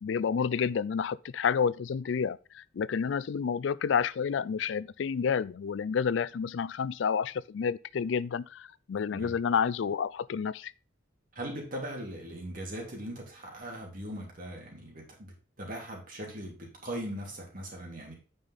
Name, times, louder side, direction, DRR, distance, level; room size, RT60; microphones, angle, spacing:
voice 1, 0.0-10.7, left 6 dB, 75° left, 0.4 m, -30 dB
voice 2, 11.3-18.1, right 1 dB, 45° right, 3.1 m, -40 dB
8.9 x 5.3 x 4.0 m
head